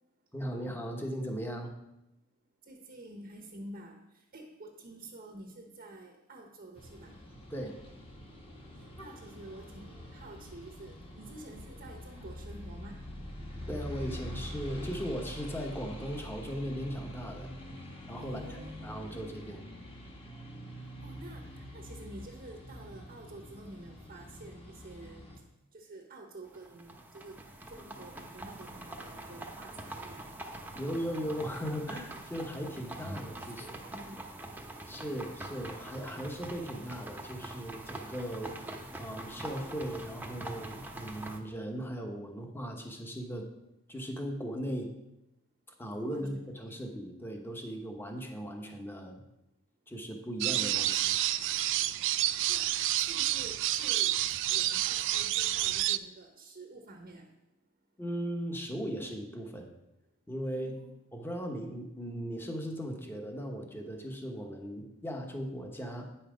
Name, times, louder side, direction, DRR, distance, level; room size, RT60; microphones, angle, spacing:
voice 1, 0.3-1.7 7.5-7.7 13.7-17.5 18.1-19.7 30.7-33.8 34.9-43.5 43.9-44.9 45.8-49.2 49.9-51.2 58.0-59.7 60.3-60.8 61.1-66.1, equal, 10° left, 3 dB, 1.0 m, -38 dB
voice 2, 2.7-7.2 9.0-13.1 18.2-19.4 21.0-25.3 25.7-27.4 27.7-30.3 33.0-33.1 33.5-34.3 46.1-46.9 52.5-54.2 54.5-57.3 60.5-60.9, right 2 dB, 40° right, 3 dB, 0.9 m, -49 dB
sound 1, 6.8-25.4, equal, 25° left, 1.3 m, -45 dB
sound 2, 26.4-41.4, right 1 dB, 10° right, 0.7 m, -44 dB
sound 3, 50.4-56.0, right 14 dB, 60° right, 0.3 m, -29 dB
9.2 x 5.7 x 5.0 m, 0.88 s
head